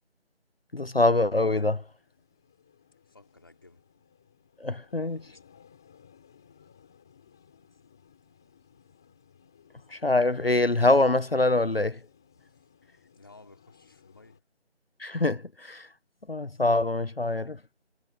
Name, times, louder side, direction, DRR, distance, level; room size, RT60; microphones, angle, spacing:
voice 1, 0.7-1.8 4.6-5.2 9.9-12.0 15.0-15.9 16.3-17.6, left 2 dB, 55° left, 1.1 m, -24 dB
sound 1, 1.2-14.4, left 7 dB, 5° left, 3.4 m, -60 dB
voice 2, 3.1-3.8 12.5-12.7 13.1-14.4, left 2 dB, 20° left, 4.5 m, -55 dB
figure-of-eight pair, 180°, 35 cm